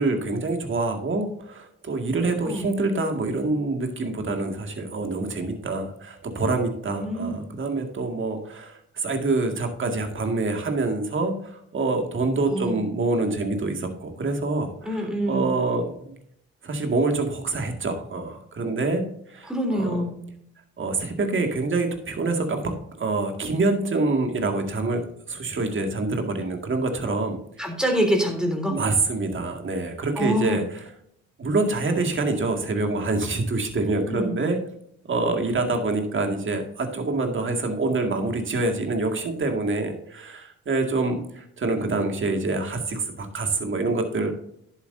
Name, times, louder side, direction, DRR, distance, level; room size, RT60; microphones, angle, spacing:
voice 1, 0.0-16.2 16.6-19.0 19.3-20.0 20.8-27.7 28.7-30.8 31.4-34.6 35.1-44.3, right 3 dB, 40° right, 4 dB, 2.1 m, -26 dB
voice 2, 7.0-7.4 12.5-12.9 14.8-15.5 19.5-20.2 27.6-28.7 30.2-30.6 34.1-34.4, equal, ahead, 3 dB, 3.2 m, -25 dB
10.5 x 8.2 x 2.7 m, 0.72 s
cardioid pair, 90°, 30 cm